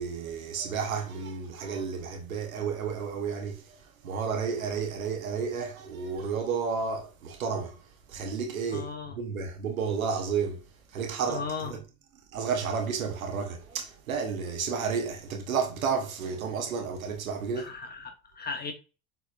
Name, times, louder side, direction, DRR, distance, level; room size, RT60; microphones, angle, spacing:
voice 1, 0.0-3.8 4.0-7.8 8.1-10.6 10.9-11.8 12.3-17.7, right 6 dB, 80° right, 0.9 m, -31 dB
voice 2, 8.7-9.2 11.3-11.7 17.6-18.7, left 5 dB, 25° left, 0.8 m, -36 dB
6.6 x 3.4 x 2.4 m
hypercardioid pair, 75°, 40 cm